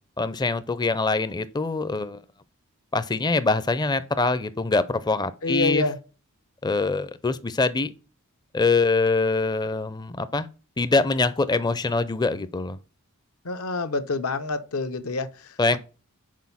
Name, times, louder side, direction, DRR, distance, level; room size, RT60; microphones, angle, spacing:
voice 1, 0.2-2.2 2.9-5.8 6.6-7.9 8.5-10.5 10.8-12.8 15.6-15.8, left 3 dB, 20° left, 0.4 m, -24 dB
voice 2, 5.4-6.0 13.4-15.8, left 3 dB, 70° left, 0.7 m, -27 dB
6.3 x 4.5 x 5.5 m
head